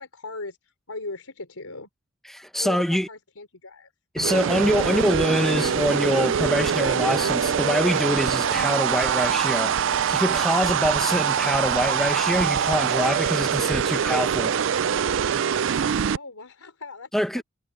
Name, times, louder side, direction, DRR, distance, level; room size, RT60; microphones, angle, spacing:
voice 1, 0.0-1.9 2.6-3.9 16.0-17.4, left 3 dB, 90° left, 4.6 m, -39 dB
voice 2, 2.3-3.1 4.1-9.8 10.1-14.6 17.1-17.4, equal, ahead, 1.1 m, -25 dB
sound 1, 4.2-16.2, right 7 dB, 60° right, 0.4 m, -24 dB
sound 2, 4.8-10.0, left 1 dB, 55° left, 1.7 m, -38 dB
head